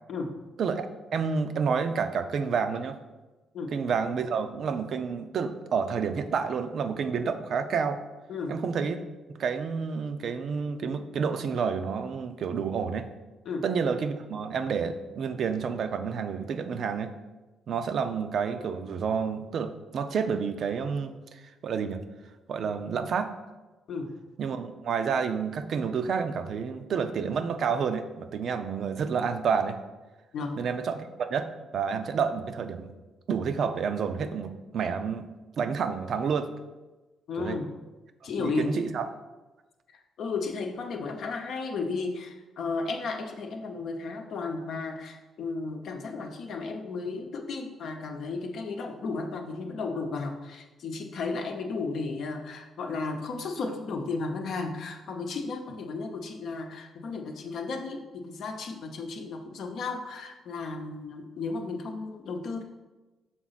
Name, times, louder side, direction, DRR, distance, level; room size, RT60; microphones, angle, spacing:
voice 1, 1.1-3.0 3.7-8.0 8.5-9.0 9.3-13.1 13.6-17.1 17.7-22.0 22.5-23.4 24.4-29.8 30.6-32.9 33.3-35.3 35.6-36.5 37.4-37.6 38.4-39.0, right 6 dB, 60° right, 8 dB, 0.5 m, -29 dB
voice 2, 37.3-37.7 38.2-38.8 40.2-62.6, left 4 dB, 70° left, 4 dB, 0.8 m, -34 dB
6.1 x 3.9 x 4.0 m, 1.2 s
cardioid pair, 90°, 0 cm